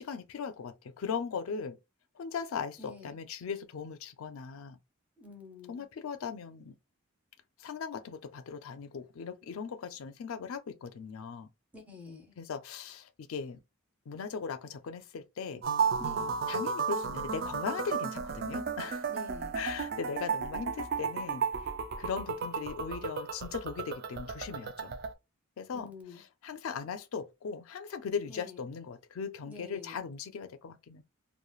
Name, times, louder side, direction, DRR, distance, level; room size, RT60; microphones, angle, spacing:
voice 1, 0.0-1.8 2.2-4.8 5.7-6.7 7.6-11.5 12.4-13.6 14.1-15.6 16.5-19.1 19.5-21.4 22.0-25.0 25.6-25.9 26.4-31.0, left 6 dB, 85° left, 0.4 m, -38 dB
voice 2, 2.8-3.2 5.2-5.9 11.7-12.3 16.0-16.3 19.1-19.6 25.7-26.2 28.3-28.6 29.5-30.0, left 3 dB, 5° right, 0.6 m, -48 dB
sound 1, 15.6-25.1, right 5 dB, 50° right, 0.3 m, -34 dB
3.1 x 2.1 x 2.3 m
head